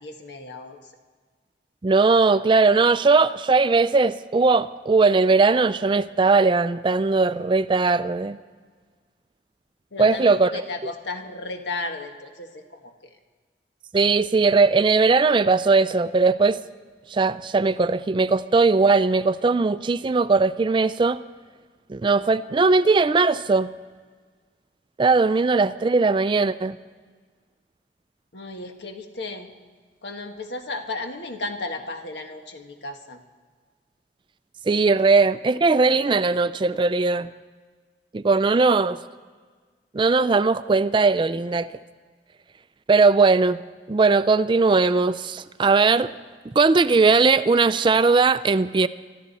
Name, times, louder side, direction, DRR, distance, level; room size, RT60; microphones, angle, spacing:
voice 1, 0.0-0.8 9.9-12.9 28.3-29.5 30.0-33.2, left 2 dB, 85° left, 5 dB, 1.5 m, -34 dB
voice 2, 1.8-8.4 10.0-10.5 10.8-10.9 13.9-16.6 17.1-21.2 21.9-23.7 25.0-26.8 34.7-37.3 38.1-39.0 39.9-41.7 42.9-43.6 43.9-46.1 46.5-48.9, right 4 dB, 25° right, 14 dB, 0.4 m, -19 dB
25.0 x 13.0 x 4.1 m, 1.5 s
head